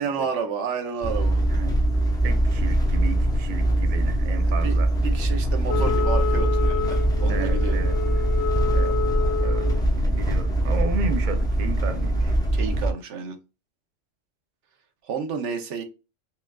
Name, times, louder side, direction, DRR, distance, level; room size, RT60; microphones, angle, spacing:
voice 1, 0.0-1.4 4.4-7.8 12.5-13.4 15.0-15.8, right 6 dB, 75° right, 1.0 m, -31 dB
sound 1, 1.0-12.9, right 1 dB, 5° left, 0.5 m, -22 dB
voice 2, 1.5-1.8 2.2-4.9 7.3-8.0 8.7-8.9 9.4-12.3, right 4 dB, 55° right, 0.6 m, -34 dB
Wind instrument woodwind instrument, 5.7-9.8, left 6 dB, 70° left, 0.8 m, -28 dB
5.4 x 2.3 x 2.2 m
omnidirectional pair, 1.3 m